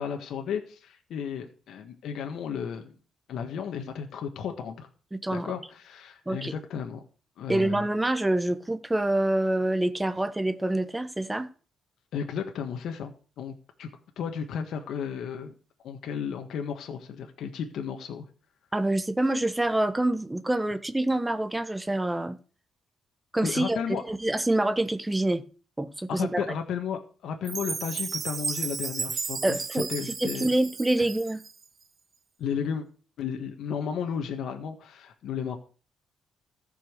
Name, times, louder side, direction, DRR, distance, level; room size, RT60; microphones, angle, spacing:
voice 1, 0.0-2.9 3.3-4.9 5.3-7.0 7.4-7.9 12.1-13.9 14.2-15.5 15.8-18.2 23.4-24.0 26.1-30.5 31.0-31.1 32.4-32.8 33.2-35.6, left 7 dB, 75° left, 4 dB, 1.5 m, -34 dB
voice 2, 5.1-5.5 6.3-6.5 7.5-11.5 18.7-22.4 23.3-23.8 24.1-25.4 25.8-26.4 29.4-29.9 30.2-31.4, right 1 dB, 10° right, 12 dB, 1.1 m, -26 dB
Chime, 27.4-31.6, right 5 dB, 40° right, 0.7 m, -34 dB
14.0 x 5.7 x 6.6 m, 0.39 s
cardioid pair, 90°, 0 cm